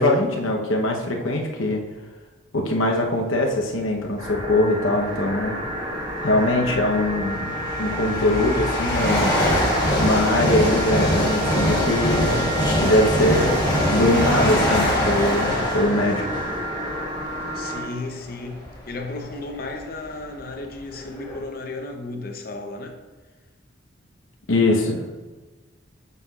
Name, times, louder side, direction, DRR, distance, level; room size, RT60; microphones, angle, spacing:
voice 1, 0.0-1.8 2.5-5.6 6.2-7.5 7.8-9.4 10.0-12.5 12.8-16.3 24.5-25.2, left 1 dB, 85° left, 1 dB, 0.9 m, -22 dB
sound 1, 4.2-17.9, equal, 20° right, 0.9 m, -30 dB
sound 2, 4.3-4.6 5.7-5.8 6.5-17.9 18.5-18.7 19.5-19.6 19.8-21.4, equal, 20° left, 1.5 m, -23 dB
voice 2, 17.5-23.0, left 2 dB, 50° left, 4 dB, 0.7 m, -34 dB
8.1 x 5.6 x 2.4 m, 1.3 s
head